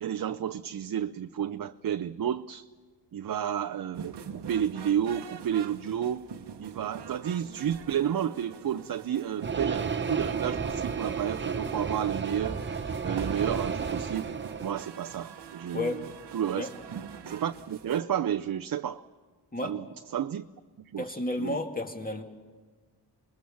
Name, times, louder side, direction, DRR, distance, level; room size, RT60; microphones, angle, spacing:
voice 1, 0.0-2.7 3.1-6.3 6.6-14.3 14.6-16.0 16.3-16.7 17.3-19.0 19.6-19.8 20.1-20.4 20.8-21.6, right 9 dB, 55° right, 0.6 m, -31 dB
sound 1, 3.9-18.0, right 7 dB, 85° right, 1.1 m, -44 dB
sound 2, 9.4-14.8, right 5 dB, 30° right, 0.9 m, -32 dB
voice 2, 15.7-16.1 16.6-16.7 19.5-19.8 21.0-22.2, left 2 dB, 20° left, 2.3 m, -32 dB
26.5 x 21.0 x 7.1 m
cardioid pair, 75°, 40 cm